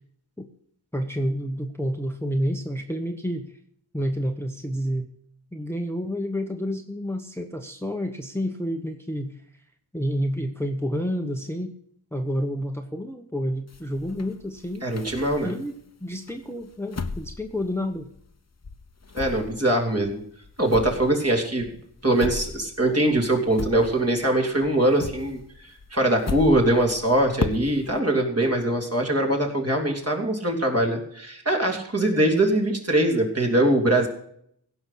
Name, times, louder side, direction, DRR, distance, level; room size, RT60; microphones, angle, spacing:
voice 1, 0.9-3.6 3.9-5.1 5.5-9.4 9.9-11.7 12.1-14.9 15.4-15.7 16.0-18.1, equal, 5° left, 5 dB, 1.0 m, -29 dB
sound 1, 13.7-15.8 16.3-18.4 18.6-24.3 24.6-28.0, left 4 dB, 35° left, 0.9 m, -36 dB
voice 2, 14.8-15.5 19.1-20.2 20.6-21.7 22.0-34.1, right 1 dB, 35° right, 1 dB, 3.3 m, -22 dB
16.0 x 5.9 x 8.3 m, 0.66 s
wide cardioid pair, 80°, 43 cm